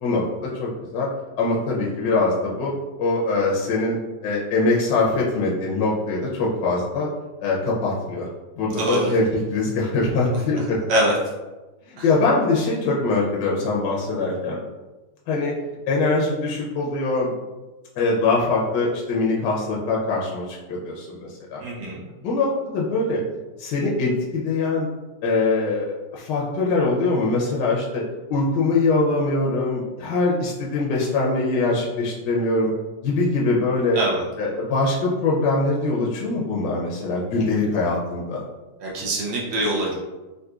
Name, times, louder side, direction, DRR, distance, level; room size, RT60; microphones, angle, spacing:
voice 1, 0.0-1.1 1.4-2.7 3.0-7.1 7.4-8.3 8.6-10.8 11.9-14.6 15.3-15.5 15.9-17.3 18.0-21.6 22.2-23.2 23.6-24.9 25.2-28.0 28.3-32.7 33.0-34.0 34.4-38.4, left 3 dB, 75° left, -4 dB, 1.2 m, -23 dB
voice 2, 8.7-9.1 10.9-11.1 12.0-12.1 21.6-22.0 34.0-34.2 38.8-39.9, right 1 dB, 80° right, -3 dB, 0.5 m, -23 dB
3.7 x 2.6 x 2.3 m, 1.1 s
omnidirectional pair, 2.0 m